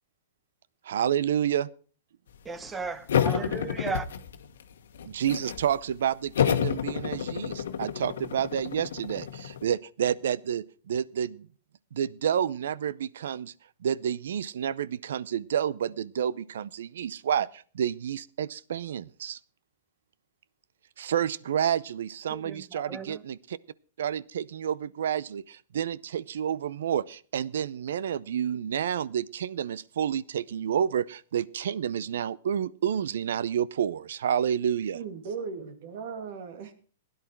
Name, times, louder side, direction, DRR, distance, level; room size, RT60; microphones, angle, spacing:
voice 1, 0.9-1.7 5.0-11.5 11.9-13.5 13.8-19.4 21.0-23.6 24.0-35.0, right 9 dB, 75° right, 0.6 m, -29 dB
voice 2, 2.4-4.1 22.3-23.2, right 4 dB, 15° right, 0.9 m, -35 dB
sound 1, 3.1-4.6 5.0-5.7 6.4-9.6, left 8 dB, 80° left, 1.4 m, -29 dB
voice 3, 34.9-36.7, right 5 dB, 60° right, 2.3 m, -37 dB
16.0 x 10.5 x 4.5 m
hypercardioid pair, 145°, 0 cm